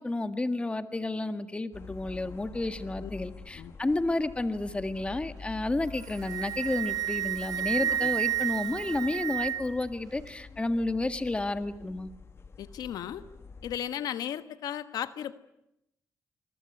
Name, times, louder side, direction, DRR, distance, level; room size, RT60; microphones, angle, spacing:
voice 1, 0.0-12.1, left 2 dB, 15° left, 10 dB, 1.7 m, -31 dB
sound 1, 1.7-13.8, left 4 dB, 40° left, 1.9 m, -47 dB
Wind instrument woodwind instrument, 5.9-9.8, right 11 dB, 70° right, 1.8 m, -31 dB
voice 2, 7.6-8.1 12.6-13.2 13.6-15.3, left 10 dB, 85° left, 12 dB, 1.3 m, -36 dB
26.0 x 22.5 x 9.7 m, 0.84 s
cardioid pair, 100°, 7 cm